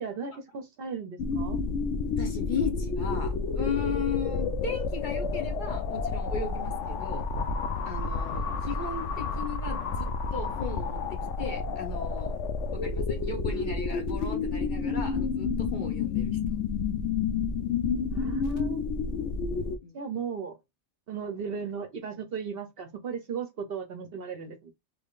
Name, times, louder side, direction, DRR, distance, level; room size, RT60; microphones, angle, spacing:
voice 1, 0.0-1.6 18.1-18.9 19.9-20.6 21.1-24.7, right 6 dB, 60° right, 0.7 m, -36 dB
sound 1, 1.2-19.8, left 4 dB, 75° left, 0.9 m, -30 dB
voice 2, 2.2-7.3 7.9-12.4 12.7-16.4 19.1-20.0, left 5 dB, 45° left, 1.0 m, -36 dB
3.5 x 3.2 x 2.3 m
omnidirectional pair, 1.2 m